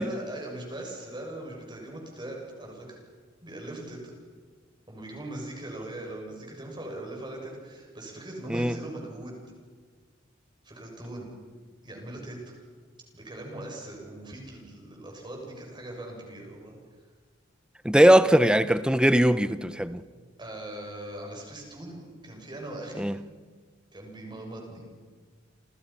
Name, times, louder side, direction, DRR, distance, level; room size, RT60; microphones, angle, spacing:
voice 1, 0.0-3.0 3.4-4.1 4.9-9.4 10.6-11.3 11.8-12.5 13.1-16.7 20.4-23.1 23.9-24.8, right 1 dB, 25° right, 7.2 m, -40 dB
voice 2, 17.8-20.0 23.0-23.2, right 1 dB, 5° right, 0.8 m, -20 dB
29.5 x 28.5 x 5.9 m
head